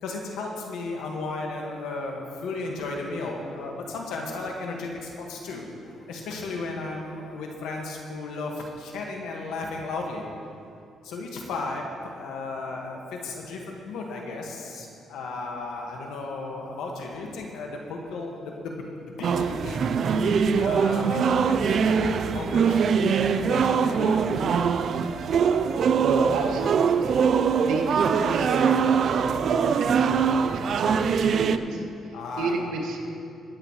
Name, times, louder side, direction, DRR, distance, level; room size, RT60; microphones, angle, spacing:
voice 1, 0.0-10.2 11.0-19.8 20.3-21.2 21.5-24.2 32.1-32.6, left 3 dB, 90° left, 0 dB, 1.7 m, -35 dB
sound 1, 19.2-31.6, right 6 dB, 60° right, 0.5 m, -23 dB
voice 2, 26.0-33.0, right 3 dB, 90° right, 0 dB, 1.9 m, -31 dB
23.5 x 7.9 x 3.2 m, 2.6 s
cardioid pair, 90°, 0 cm